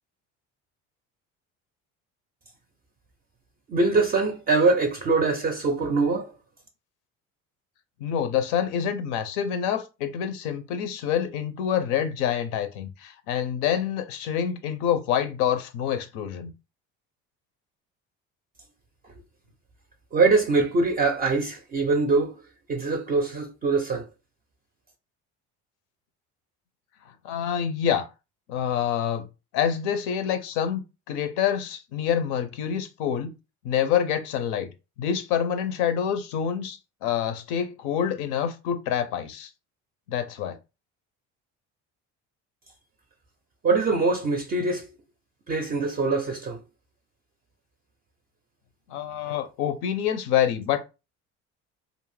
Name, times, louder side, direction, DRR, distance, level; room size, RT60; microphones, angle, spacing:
voice 1, 3.7-6.3 20.1-22.4 22.7-24.1 43.6-44.9 45.5-46.6 49.2-49.4, right 3 dB, 30° right, 0.4 m, -23 dB
voice 2, 8.0-16.5 27.2-28.1 28.5-29.3 29.5-33.3 33.6-34.7 35.0-39.5 40.1-40.6 48.9-50.9, left 9 dB, 90° left, 0.5 m, -27 dB
2.5 x 2.0 x 3.1 m
cardioid pair, 120°, 31 cm